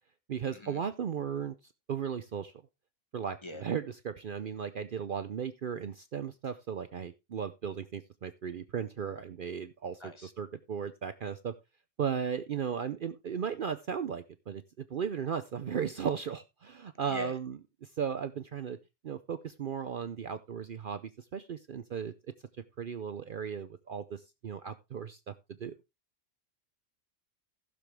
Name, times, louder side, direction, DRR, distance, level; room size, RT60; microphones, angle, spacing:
voice 1, 0.3-1.5 1.9-2.5 3.1-11.5 12.0-18.8 19.0-22.1 22.8-25.3 25.6-25.7, right 7 dB, 55° right, 12 dB, 0.7 m, -36 dB
voice 2, 10.0-10.3 17.1-17.3, left 1 dB, 25° left, 9 dB, 1.1 m, -43 dB
15.5 x 6.9 x 3.3 m, 0.25 s
omnidirectional pair, 1.2 m